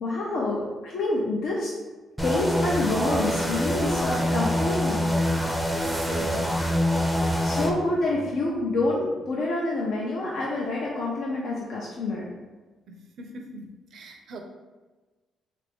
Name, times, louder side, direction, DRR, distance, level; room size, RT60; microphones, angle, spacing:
voice 1, 0.0-1.7 2.2-5.1 7.4-12.3, left 2 dB, 70° left, -4 dB, 0.6 m, -27 dB
sound 1, 2.2-7.7, equal, ahead, 0.5 m, -25 dB
voice 2, 5.8-6.7 12.9-14.4, right 2 dB, 65° right, 4 dB, 0.5 m, -40 dB
3.3 x 2.5 x 3.4 m, 1.2 s
cardioid pair, 90°, 0 cm